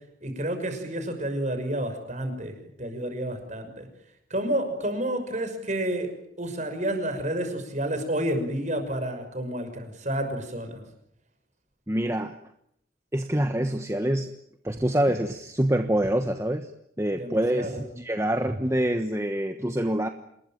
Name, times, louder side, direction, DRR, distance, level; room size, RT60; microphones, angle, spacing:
voice 1, 0.2-3.9 4.3-10.8 17.1-17.8, right 1 dB, 35° right, 6 dB, 6.1 m, -30 dB
voice 2, 11.9-12.4 13.1-14.3 14.6-16.7 17.0-20.1, right 1 dB, 15° right, 7 dB, 1.2 m, -26 dB
27.5 x 21.0 x 9.1 m, 0.75 s
head